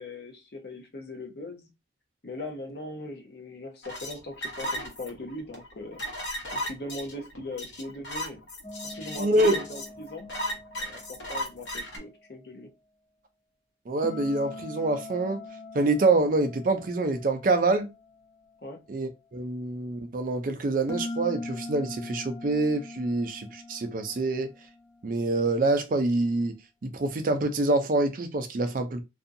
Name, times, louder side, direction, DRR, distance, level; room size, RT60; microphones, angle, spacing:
voice 1, 0.0-1.7 2.2-6.0 6.5-8.4 8.8-10.3 10.8-12.7 18.6-18.8, left 1 dB, 55° left, 0.7 m, -40 dB
sound 1, 3.8-12.0, equal, 80° left, 1.1 m, -35 dB
sound 2, 8.6-11.7 14.0-18.5 20.9-25.4, left 2 dB, 15° left, 0.4 m, -42 dB
voice 2, 9.2-9.6 13.9-15.4 15.7-17.9 18.9-24.5 25.0-26.6 26.8-29.0, right 2 dB, 45° right, 0.4 m, -26 dB
2.6 x 2.3 x 2.5 m
head